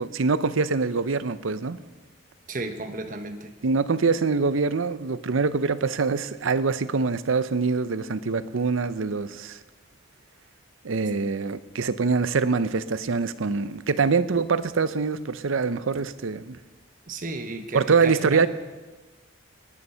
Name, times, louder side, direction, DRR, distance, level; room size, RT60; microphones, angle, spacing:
voice 1, 0.0-1.8 3.6-9.6 10.8-16.6 17.7-18.5, right 4 dB, 85° right, 0.6 m, -24 dB
voice 2, 2.5-3.5 17.1-18.5, right 2 dB, 40° right, 0.9 m, -33 dB
19.0 x 9.8 x 5.6 m
head